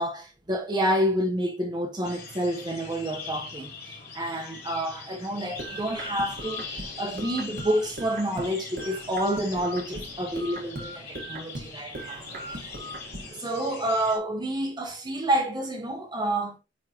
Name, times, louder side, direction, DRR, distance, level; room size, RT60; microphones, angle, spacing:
voice 1, 0.0-12.2 12.5-12.7 13.3-16.6, right 1 dB, 25° right, 1.0 m, -29 dB
sound 1, 2.0-14.2, left 4 dB, 60° left, 3.5 m, -42 dB
sound 2, 5.6-8.5 8.8-11.7 11.9-13.3, right 1 dB, 55° right, 1.6 m, -39 dB
9.5 x 3.7 x 2.9 m
head